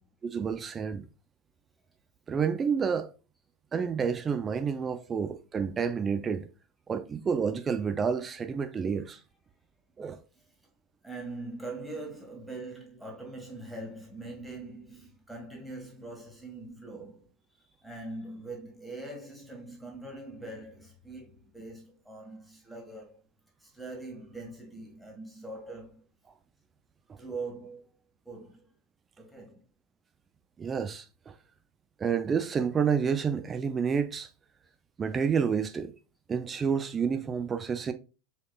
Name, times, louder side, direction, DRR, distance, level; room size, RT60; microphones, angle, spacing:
voice 1, 0.2-1.1 2.3-3.1 3.7-6.5 6.9-9.2 10.0-10.2 27.1-27.2 30.6-31.3 32.0-34.3 35.0-35.9 36.3-37.9, right 6 dB, 25° right, 0.5 m, -29 dB
voice 2, 11.0-17.3 17.5-23.2 23.6-26.1 27.2-27.8 28.3-28.7 29.2-29.6, right 2 dB, ahead, 1.9 m, -42 dB
6.2 x 3.5 x 2.4 m
hypercardioid pair, 85°, 0 cm